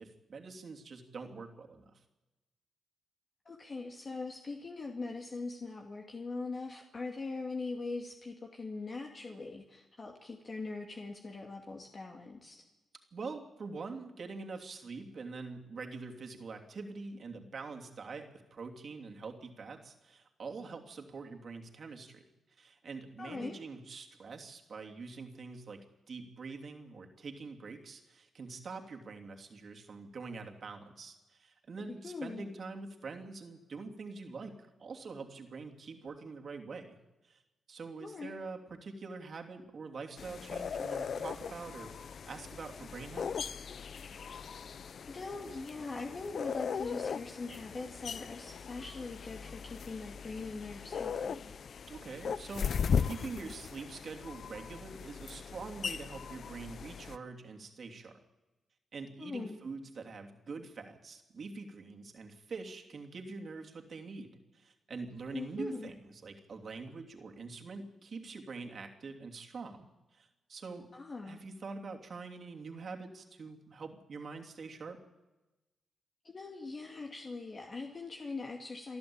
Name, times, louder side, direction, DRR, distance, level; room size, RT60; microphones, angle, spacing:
voice 1, 0.0-2.0 13.1-22.2 22.6-37.0 37.2-37.4 37.7-43.3 51.9-58.2 58.9-70.9 71.2-75.0, right 4 dB, 55° right, 3 dB, 3.0 m, -45 dB
voice 2, 3.5-12.6 23.2-23.6 32.0-32.5 38.0-38.4 45.0-51.5 59.2-59.6 65.3-65.9 70.9-71.4 76.2-79.0, left 3 dB, 40° left, 2 dB, 2.3 m, -41 dB
sound 1, 40.2-57.2, left 6 dB, 65° left, 0.8 m, -38 dB
29.0 x 11.5 x 8.8 m, 1.1 s
cardioid pair, 80°, 0 cm